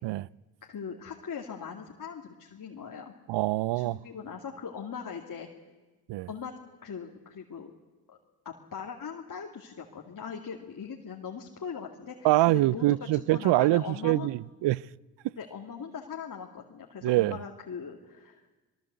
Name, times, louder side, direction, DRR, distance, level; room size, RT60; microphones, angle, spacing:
voice 1, 0.6-3.1 3.7-5.5 6.3-6.5 6.8-7.7 8.1-8.2 8.4-12.9 13.1-14.3 15.4-18.4, left 6 dB, 45° left, 1 dB, 2.4 m, -40 dB
voice 2, 3.3-4.0 6.1-6.3 12.2-14.9 17.0-17.4, right 17 dB, 65° right, 23 dB, 0.6 m, -25 dB
22.0 x 21.5 x 8.1 m, 1.2 s
hypercardioid pair, 55°, 46 cm